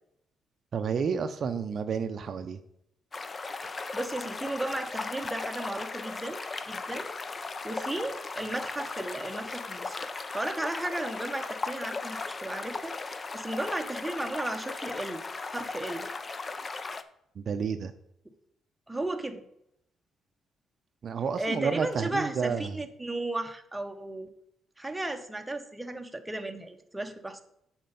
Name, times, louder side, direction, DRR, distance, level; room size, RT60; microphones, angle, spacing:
voice 1, 0.7-2.6 17.4-17.9 21.0-22.8, right 6 dB, 55° right, 9 dB, 0.5 m, -30 dB
sound 1, 3.1-17.0, left 3 dB, 35° left, 0.5 m, -37 dB
voice 2, 3.6-15.2 15.5-16.1 18.9-19.5 21.4-24.3 24.8-27.4, right 1 dB, 10° right, 6 dB, 0.8 m, -35 dB
7.5 x 4.4 x 5.4 m, 0.76 s
cardioid pair, 90°, 0 cm